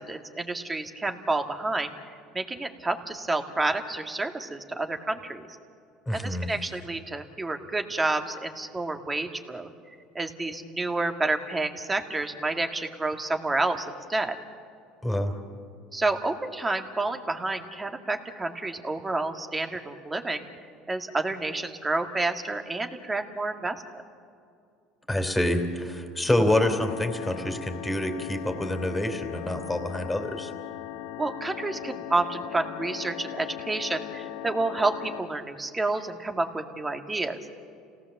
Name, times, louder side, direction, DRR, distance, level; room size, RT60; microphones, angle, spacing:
voice 1, 0.0-1.9 2.3-5.4 6.1-9.7 10.2-14.4 15.9-20.4 20.9-23.8 31.2-37.4, right 2 dB, 15° right, 5 dB, 2.1 m, -29 dB
voice 2, 6.1-6.5 15.0-15.3 25.1-30.5, left 1 dB, 10° left, 5 dB, 3.2 m, -27 dB
sound 1, 26.6-35.2, left 11 dB, 85° left, 1.4 m, -39 dB
29.5 x 18.0 x 7.4 m, 2.5 s
supercardioid pair, 105°, 0 cm